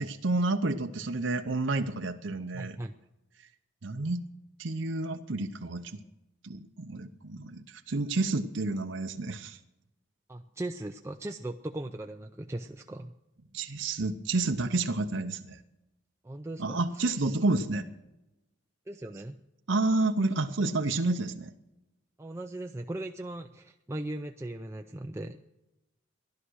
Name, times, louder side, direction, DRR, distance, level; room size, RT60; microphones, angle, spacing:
voice 1, 0.0-2.8 3.8-4.3 4.6-6.0 6.4-9.6 13.5-15.6 16.6-17.9 19.7-21.5, right 2 dB, 70° right, 6 dB, 0.8 m, -30 dB
voice 2, 2.5-2.9 10.3-13.1 16.2-17.2 18.9-19.4 22.2-25.4, right 1 dB, 15° right, 4 dB, 0.4 m, -38 dB
15.5 x 11.5 x 6.3 m, 0.96 s
head